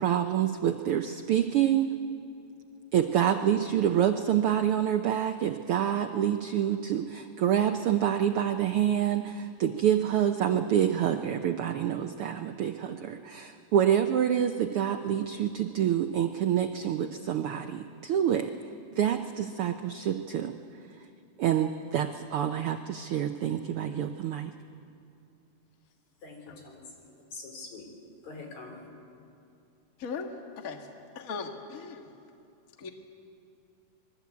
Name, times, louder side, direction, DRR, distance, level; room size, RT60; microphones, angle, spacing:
voice 1, 0.0-2.0 2.9-18.5 19.0-20.5 21.4-24.5, right 10 dB, 80° right, 1.2 m, -27 dB
voice 2, 26.2-27.9 28.2-28.8, left 3 dB, 65° left, 5.3 m, -45 dB
voice 3, 31.1-32.0 32.8-32.9, left 5 dB, 35° left, 1.7 m, -37 dB
27.0 x 22.0 x 8.4 m
omnidirectional pair, 3.5 m